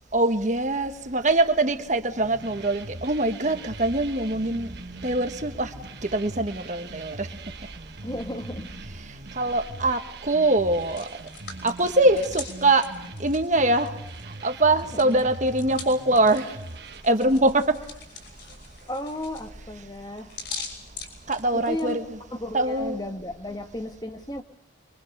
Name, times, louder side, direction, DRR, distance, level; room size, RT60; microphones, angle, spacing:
voice 1, 0.1-4.7 5.0-5.7 6.1-7.3 9.4-11.0 11.6-12.9 13.2-13.9 14.4-16.5 17.0-17.8 21.3-22.0 22.5-23.0, right 2 dB, 40° right, 7 dB, 1.6 m, -23 dB
sound 1, 2.2-17.0, right 2 dB, 55° right, 2.0 m, -41 dB
voice 2, 8.0-8.7 14.9-15.3 18.9-20.3 21.5-24.4, left 1 dB, 20° left, 7 dB, 1.5 m, -34 dB
Hands, 10.6-14.3 14.6-21.9, left 5 dB, 60° left, 6.2 m, -42 dB
25.0 x 24.0 x 6.7 m, 0.83 s
head